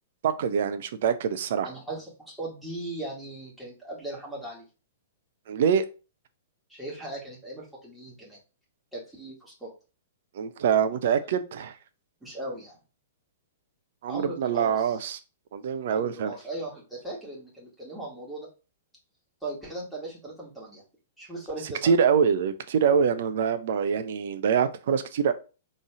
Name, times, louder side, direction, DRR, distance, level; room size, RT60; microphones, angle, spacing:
voice 1, 0.2-1.7 5.5-5.8 10.3-11.7 14.0-15.2 15.5-16.3 21.8-25.3, right 7 dB, 55° right, 0.5 m, -24 dB
voice 2, 1.6-4.7 6.7-8.4 8.9-9.7 12.2-12.8 14.1-15.0 15.9-18.5 19.4-20.8 21.2-21.9, right 1 dB, 5° right, 2.2 m, -38 dB
3.9 x 3.2 x 3.6 m
figure-of-eight pair, 110°, 0 cm